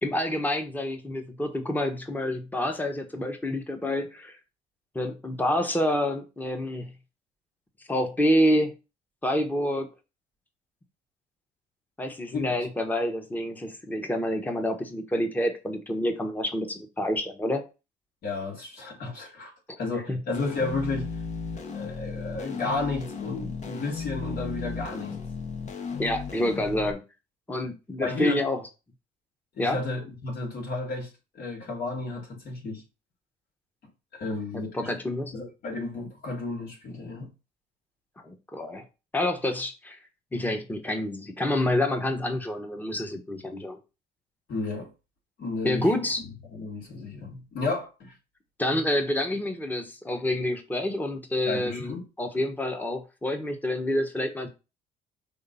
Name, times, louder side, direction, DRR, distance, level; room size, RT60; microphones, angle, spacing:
voice 1, 0.0-4.4 4.9-6.9 7.9-8.7 9.2-9.9 12.0-17.6 20.1-20.2 26.0-27.0 27.5-28.6 29.6-29.8 34.5-35.3 38.2-38.8 39.1-40.0 40.3-43.8 45.6-46.2 48.6-54.5, left 1 dB, 10° left, 1.1 m, -28 dB
voice 2, 18.2-21.1 21.5-25.1 28.0-28.4 29.6-31.1 31.3-32.8 34.2-34.9 35.3-37.3 44.5-44.9 45.4-45.9 46.5-48.1 51.4-52.0, left 3 dB, 60° left, 2.9 m, -32 dB
sound 1, 20.3-26.9, left 5 dB, 45° left, 1.2 m, -35 dB
5.7 x 3.3 x 5.5 m
cardioid pair, 110°, 17 cm